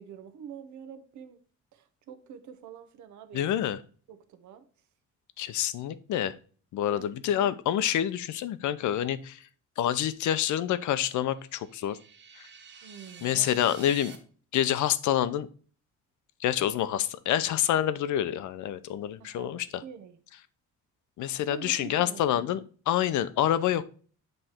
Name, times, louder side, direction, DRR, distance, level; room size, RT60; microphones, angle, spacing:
voice 1, 0.0-1.4 1.7-3.4 4.1-4.6 5.4-5.6 6.9-7.2 12.8-13.5 19.2-20.2 21.5-22.6, right 8 dB, 75° right, 10 dB, 0.9 m, -46 dB
voice 2, 3.3-3.8 5.4-6.4 6.7-9.5 9.8-12.0 12.4-12.5 13.2-14.2 14.5-15.5 16.4-19.8 21.2-23.9, left 11 dB, 80° left, 14 dB, 0.6 m, -27 dB
sound 1, 11.4-14.2, right 6 dB, 40° right, 1.2 m, -49 dB
7.8 x 3.3 x 4.3 m, 0.41 s
cardioid pair, 160°, 30 cm